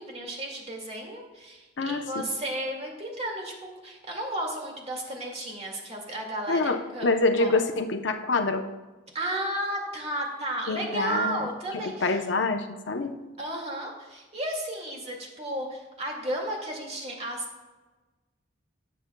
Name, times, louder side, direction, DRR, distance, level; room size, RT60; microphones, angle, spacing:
voice 1, 0.0-3.5 3.8-7.1 7.4-7.6 9.1-12.2 13.4-17.6, right 1 dB, 35° right, 0 dB, 2.1 m, -33 dB
voice 2, 1.8-2.2 6.5-8.6 10.7-11.5 11.7-13.1, left 3 dB, 70° left, 6 dB, 0.8 m, -26 dB
17.0 x 7.6 x 2.3 m, 1.2 s
head